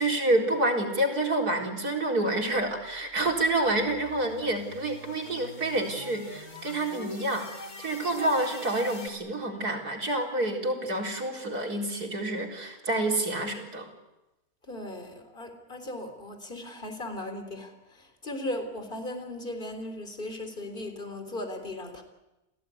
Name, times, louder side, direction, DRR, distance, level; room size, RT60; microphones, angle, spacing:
voice 1, 0.0-13.9, right 1 dB, 75° right, 4.7 m, -28 dB
sound 1, 2.7-9.1, left 2 dB, 70° left, 3.3 m, -44 dB
voice 2, 14.7-22.0, left 1 dB, 30° left, 3.9 m, -37 dB
29.5 x 18.0 x 9.6 m
omnidirectional pair, 1.6 m